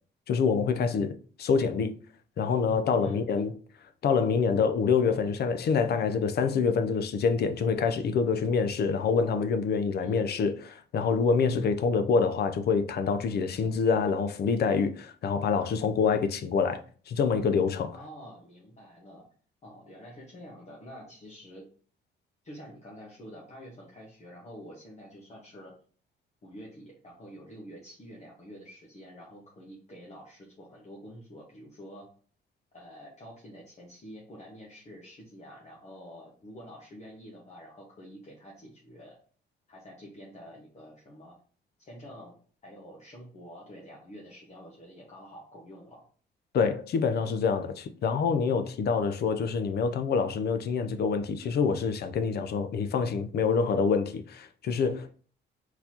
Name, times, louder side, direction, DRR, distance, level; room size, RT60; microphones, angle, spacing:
voice 1, 0.3-1.1 1.4-1.9 2.4-3.5 4.0-16.8 17.1-17.9 46.5-55.1, left 5 dB, 55° left, 0.6 m, -26 dB
voice 2, 3.0-3.5 6.9-7.2 10.0-10.3 11.8-11.9 17.9-19.2 19.6-21.6 22.4-25.7 26.4-32.1 32.7-39.2 39.7-41.4 41.8-46.1 53.6-53.8, equal, 35° left, 1.2 m, -48 dB
4.4 x 4.0 x 2.9 m
cardioid pair, 135°, 20 cm